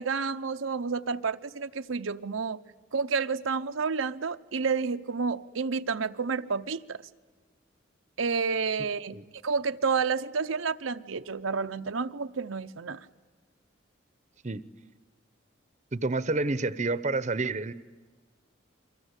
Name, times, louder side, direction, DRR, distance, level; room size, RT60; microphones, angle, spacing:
voice 1, 0.0-2.6 2.9-7.0 8.2-9.2 9.4-13.0, right 5 dB, 85° right, 0.8 m, -30 dB
voice 2, 15.9-17.7, right 3 dB, 35° right, 0.8 m, -29 dB
29.5 x 23.5 x 8.2 m
head